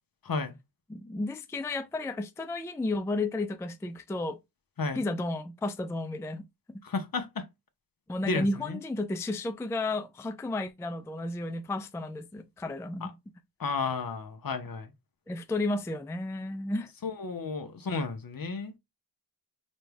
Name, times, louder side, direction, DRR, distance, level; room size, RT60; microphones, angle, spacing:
voice 1, 0.2-0.5 4.8-5.0 6.8-7.5 8.2-8.8 13.0-13.1 13.6-14.9 17.0-18.7, left 4 dB, 55° left, 0.9 m, -32 dB
voice 2, 0.9-4.4 4.9-6.4 8.1-13.2 15.3-16.9, left 2 dB, 5° left, 0.3 m, -32 dB
4.1 x 2.3 x 3.3 m
cardioid pair, 55°, 42 cm